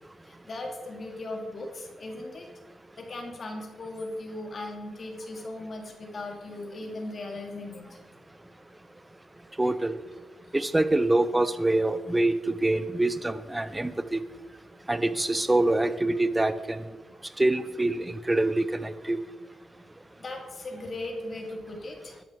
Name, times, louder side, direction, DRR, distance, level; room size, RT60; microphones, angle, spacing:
voice 1, 0.3-2.5 3.0-8.0 20.2-22.2, left 2 dB, 45° left, 2 dB, 3.0 m, -38 dB
voice 2, 9.6-9.9 10.5-14.2 14.9-16.8 17.4-19.2, right 2 dB, 15° right, 12 dB, 0.9 m, -25 dB
13.5 x 11.0 x 4.9 m, 1.2 s
cardioid pair, 85°, 0 cm